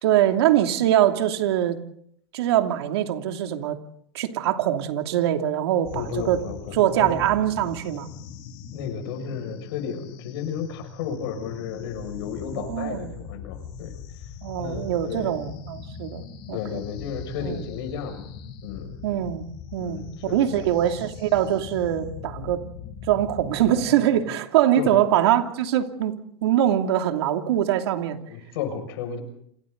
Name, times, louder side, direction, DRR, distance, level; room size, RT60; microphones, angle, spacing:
voice 1, 0.0-1.8 2.3-3.8 4.1-6.4 6.7-8.1 12.5-13.1 14.4-16.8 17.4-17.6 19.0-19.4 19.7-22.6 23.1-26.2 26.4-28.2, right 11 dB, 70° right, 5 dB, 2.8 m, -23 dB
sound 1, 5.8-24.4, left 7 dB, 40° left, 3.1 m, -41 dB
voice 2, 5.9-7.2 8.7-13.9 14.6-15.4 16.5-18.3 18.6-19.0 19.8-20.6 24.8-25.0 28.3-29.2, left 7 dB, 65° left, 6 dB, 6.6 m, -33 dB
29.0 x 27.0 x 4.0 m, 0.67 s
supercardioid pair, 150°, 14 cm